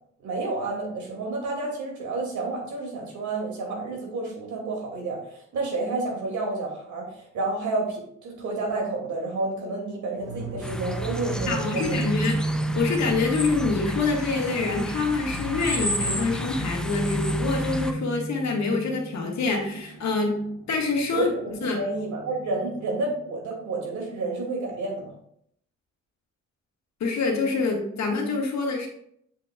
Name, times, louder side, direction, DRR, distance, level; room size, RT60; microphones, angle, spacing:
voice 1, 0.2-12.0 21.1-25.1, right 2 dB, 75° right, -1 dB, 2.5 m, -30 dB
sound 1, 10.2-23.0, right 2 dB, 55° right, 1.1 m, -33 dB
sound 2, 10.6-17.9, left 1 dB, 5° left, 0.6 m, -32 dB
voice 2, 11.5-12.4 12.8-20.4 20.7-21.8 27.0-28.9, left 4 dB, 65° left, 0 dB, 1.8 m, -26 dB
7.4 x 6.1 x 2.4 m, 0.69 s
cardioid pair, 90°, 30 cm